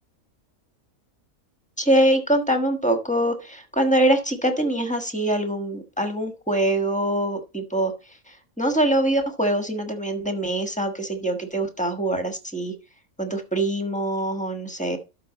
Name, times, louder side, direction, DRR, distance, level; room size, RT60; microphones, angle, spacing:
voice 1, 1.8-7.9 8.6-12.7 13.2-15.0, right 1 dB, 5° left, 6 dB, 1.2 m, -23 dB
12.5 x 4.4 x 4.1 m, 0.28 s
omnidirectional pair, 1.5 m